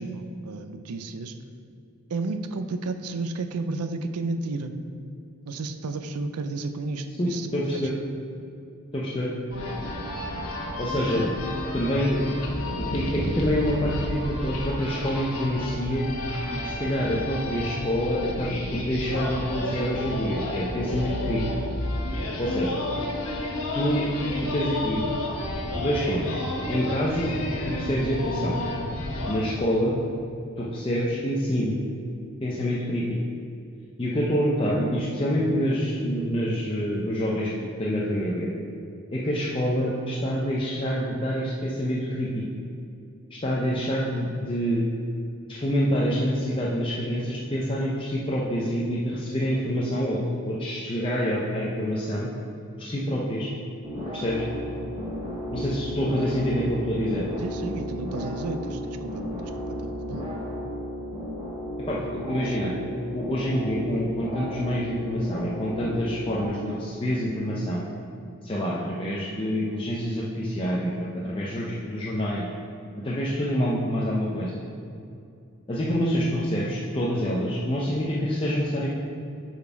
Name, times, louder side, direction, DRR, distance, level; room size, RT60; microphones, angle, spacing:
voice 1, 0.0-1.4 2.1-4.7 5.5-7.5 7.7-7.8 57.4-60.3, right 3 dB, 85° right, 8 dB, 0.5 m, -32 dB
voice 2, 7.2-7.9 8.9-9.3 10.8-11.3 11.7-12.3 12.8-16.1 16.5-21.4 22.4-22.8 23.7-24.1 24.4-25.0 25.7-26.4 26.7-28.6 29.3-29.9 30.6-31.8 32.4-33.2 34.0-37.5 37.8-38.5 39.1-42.4 43.3-44.8 45.5-50.2 50.5-52.3 52.8-53.5 54.1-54.4 55.5-57.3 61.9-62.7 63.1-67.9 68.4-72.5 73.0-74.6 75.7-78.9, equal, 25° left, -5 dB, 0.5 m, -27 dB
sound 1, 9.5-29.4, left 1 dB, 80° left, 1.1 m, -31 dB
sound 2, 53.8-66.5, equal, 25° right, 1.0 m, -34 dB
7.2 x 4.1 x 4.5 m, 2.6 s
head